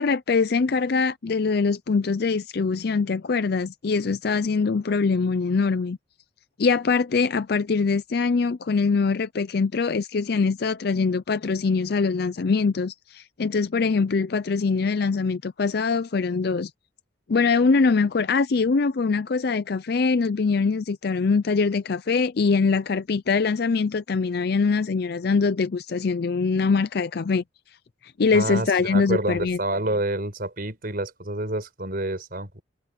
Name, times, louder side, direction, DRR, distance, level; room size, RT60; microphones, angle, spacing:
voice 1, 0.0-6.0 6.6-16.7 17.3-27.4 28.0-29.6, left 4 dB, 60° left, 0.5 m, -23 dB
voice 2, 28.3-32.6, right 1 dB, 55° right, 5.0 m, -28 dB
head